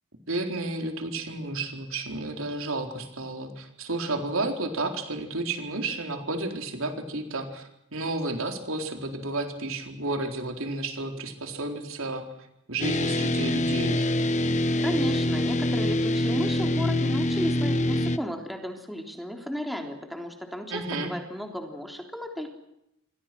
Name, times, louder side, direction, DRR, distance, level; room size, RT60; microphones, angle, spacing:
voice 1, 0.3-12.3 12.7-14.1 20.7-21.1, right 2 dB, 70° right, 5 dB, 4.3 m, -32 dB
sound 1, 12.8-18.2, left 1 dB, 35° left, 1.1 m, -25 dB
voice 2, 14.8-22.5, equal, ahead, 3 dB, 3.5 m, -33 dB
29.5 x 24.5 x 6.2 m, 0.83 s
head